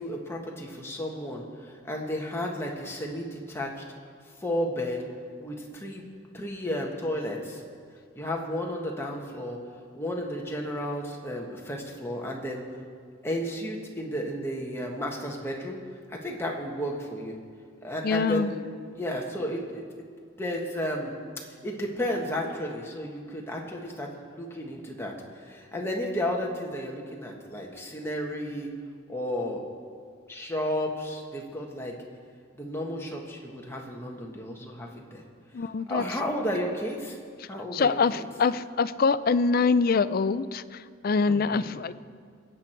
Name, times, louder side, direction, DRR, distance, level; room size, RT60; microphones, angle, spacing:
voice 1, 0.0-3.8 4.4-5.0 5.4-6.1 6.3-7.6 8.1-9.6 9.9-12.6 13.2-15.8 16.1-17.3 17.8-18.6 18.9-19.8 20.4-21.1 21.5-28.7 29.1-29.6 30.3-31.9 32.6-35.2 35.9-37.2 37.5-38.2 41.3-41.7, equal, 10° left, -1 dB, 1.5 m, -33 dB
voice 2, 18.0-18.5 35.5-36.0 37.7-41.9, left 4 dB, 45° left, 14 dB, 0.4 m, -24 dB
22.0 x 8.6 x 4.5 m, 2.1 s
head